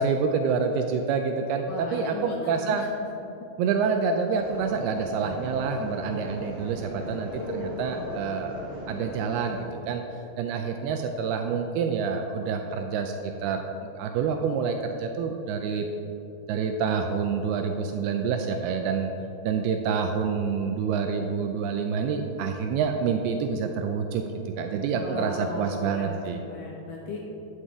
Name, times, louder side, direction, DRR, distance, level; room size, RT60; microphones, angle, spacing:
voice 1, 0.0-2.9 3.6-8.6 8.9-9.6 9.9-10.0 10.4-13.2 13.4-15.8 16.5-19.1 19.4-24.2 24.6-26.4, right 5 dB, 80° right, 4 dB, 2.3 m, -27 dB
voice 2, 1.7-2.9 7.0-8.3 24.9-27.2, left 3 dB, 70° left, -2 dB, 2.1 m, -37 dB
sound 1, 4.4-9.6, equal, 55° right, 0.6 m, -39 dB
11.0 x 9.8 x 3.6 m, 3.0 s
omnidirectional pair, 4.9 m